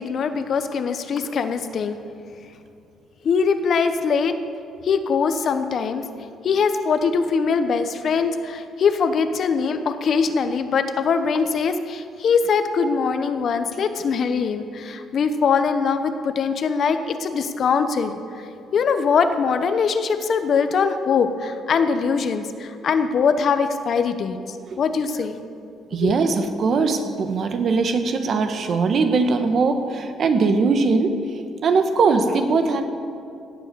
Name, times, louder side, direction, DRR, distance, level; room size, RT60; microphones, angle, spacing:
voice 1, 0.0-2.0 3.2-4.3 4.8-6.0 6.4-18.2 18.7-24.4 24.8-25.4 25.9-26.2, left 5 dB, 50° left, 9 dB, 0.9 m, -22 dB
voice 2, 25.9-31.1 31.6-32.9, right 4 dB, 50° right, 7 dB, 1.2 m, -20 dB
17.0 x 8.2 x 6.9 m, 2.5 s
cardioid pair, 130°, 0 cm